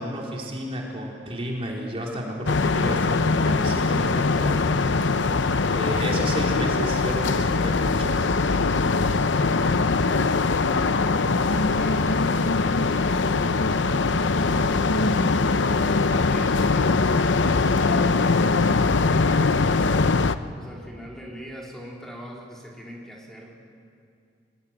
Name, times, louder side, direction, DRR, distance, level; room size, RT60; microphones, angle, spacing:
voice 1, 0.0-4.9 5.7-8.2, equal, 30° right, -2 dB, 4.0 m, -32 dB
sound 1, 2.5-20.4, left 3 dB, 70° left, 0.7 m, -22 dB
voice 2, 4.9-5.3 11.4-19.8 20.6-23.6, equal, 5° left, -3 dB, 3.6 m, -41 dB
22.5 x 22.5 x 9.0 m, 2.4 s
head